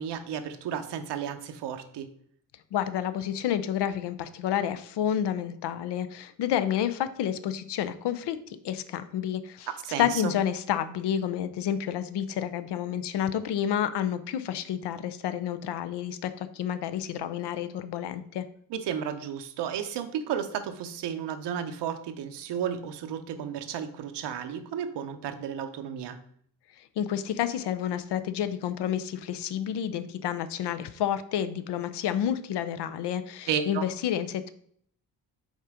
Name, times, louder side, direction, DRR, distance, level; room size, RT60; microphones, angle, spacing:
voice 1, 0.0-2.1 9.8-10.3 18.7-26.2 33.5-33.8, right 8 dB, 80° right, 8 dB, 0.8 m, -33 dB
voice 2, 2.7-9.7 10.0-18.5 26.8-34.5, left 10 dB, 80° left, 12 dB, 0.6 m, -30 dB
5.4 x 3.8 x 4.8 m, 0.63 s
cardioid pair, 105°, 41 cm